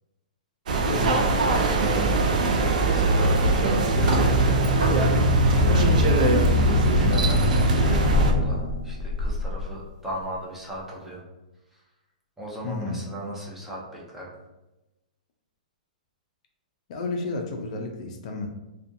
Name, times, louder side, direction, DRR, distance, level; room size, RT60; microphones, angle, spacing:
sound 1, 0.7-8.3, right 3 dB, 65° right, 0.4 m, -22 dB
voice 1, 0.8-1.6 12.6-13.0 16.9-18.5, left 3 dB, 50° left, 3 dB, 0.4 m, -31 dB
voice 2, 2.8-5.1 5.5-6.3 6.6-11.2 11.7-11.8 12.4-14.3, right 1 dB, 5° right, -5 dB, 0.6 m, -36 dB
sound 2, 3.9-9.0, left 1 dB, 25° left, 1.1 m, -23 dB
sound 3, 4.1-4.3 4.8-10.4 10.7-11.0, left 3 dB, 35° right, 1.2 m, -31 dB
2.5 x 2.2 x 2.5 m, 1.0 s
hypercardioid pair, 145°, 5 cm